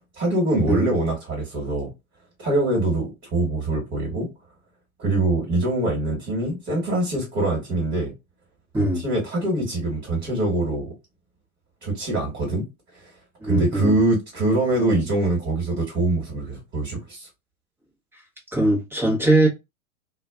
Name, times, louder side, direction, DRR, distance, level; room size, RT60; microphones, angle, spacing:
voice 1, 0.2-1.9 2.4-4.3 5.0-8.1 8.7-10.9 11.8-12.6 12.9-13.1 13.4-17.3, right 2 dB, 25° right, 1.4 m, -24 dB
voice 2, 13.4-14.0 18.5-19.5, right 1 dB, 5° right, 0.8 m, -20 dB
2.4 x 2.3 x 2.3 m
hypercardioid pair, 105°, 43 cm